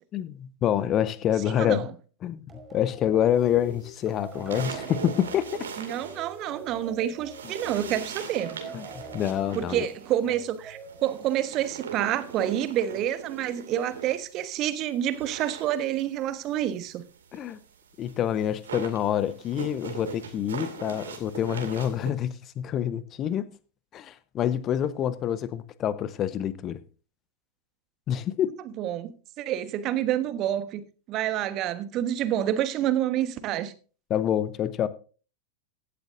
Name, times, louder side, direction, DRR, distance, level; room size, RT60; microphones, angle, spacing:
voice 1, 0.1-1.9 2.2-5.5 7.4-7.5 8.7-8.9 9.1-9.9 17.3-17.6 18.0-23.5 23.9-26.8 28.1-28.6 34.1-34.9, left 10 dB, 30° left, 1.0 m, -27 dB
voice 2, 1.4-1.9 5.8-8.6 9.5-17.0 28.8-33.7, right 11 dB, 35° right, 1.2 m, -28 dB
sound 1, 2.5-11.7, right 2 dB, 20° right, 5.2 m, -45 dB
sound 2, 3.7-6.9 7.2-14.5 14.8-22.1, right 6 dB, 65° right, 2.3 m, -40 dB
16.5 x 11.5 x 2.6 m
figure-of-eight pair, 90°, 0 cm